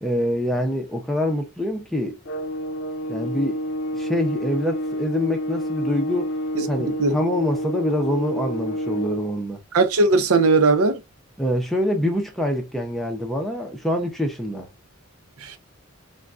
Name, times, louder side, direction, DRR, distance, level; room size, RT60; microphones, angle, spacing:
voice 1, 0.0-2.2 3.1-3.6 3.9-6.3 6.7-9.6 11.4-14.7, left 1 dB, ahead, 0.5 m, -25 dB
sound 1, 2.3-9.3, equal, 60° left, 0.5 m, -28 dB
voice 2, 9.7-11.0 15.4-15.6, right 3 dB, 90° right, 0.6 m, -18 dB
3.6 x 2.2 x 2.4 m
head